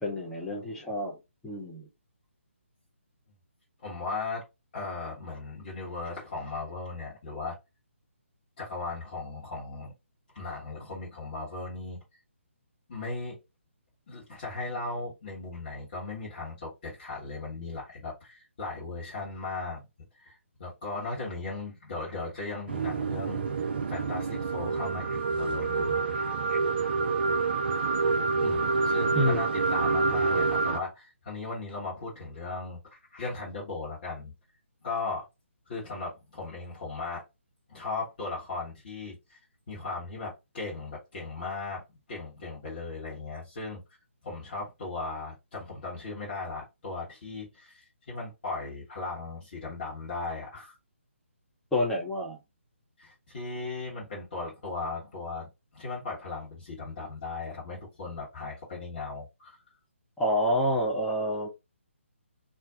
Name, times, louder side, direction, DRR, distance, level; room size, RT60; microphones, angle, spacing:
voice 1, 0.0-1.2 1.4-1.9 29.1-29.4 51.7-52.4 60.2-61.5, equal, 5° left, 0.5 m, -28 dB
voice 2, 3.8-4.4 4.7-7.6 8.6-9.9 10.3-12.0 12.9-13.4 14.1-19.9 20.2-26.6 28.4-34.3 34.8-35.2 35.7-37.2 37.7-39.4 39.7-41.8 42.1-43.8 44.2-50.8 53.0-59.6, left 3 dB, 40° left, 1.1 m, -37 dB
sound 1, 22.7-30.8, right 4 dB, 50° right, 0.4 m, -27 dB
2.5 x 2.2 x 3.5 m
figure-of-eight pair, 140°, 7 cm